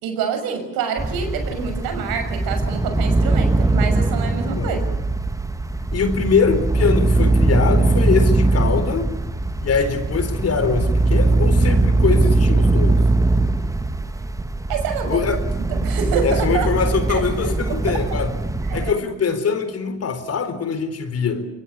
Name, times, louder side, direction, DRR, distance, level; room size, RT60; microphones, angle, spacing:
voice 1, 0.0-4.8 14.7-15.3 15.7-16.7 17.1-17.5 18.7-18.9, right 6 dB, 70° right, 7 dB, 6.5 m, -27 dB
sound 1, 1.0-18.9, right 2 dB, 10° right, 1.6 m, -20 dB
voice 2, 5.9-9.1 9.6-13.1 15.1-15.4 16.2-18.4 18.7-21.5, left 5 dB, 40° left, 11 dB, 4.1 m, -23 dB
24.5 x 22.0 x 9.9 m, 0.87 s
supercardioid pair, 85°, 37 cm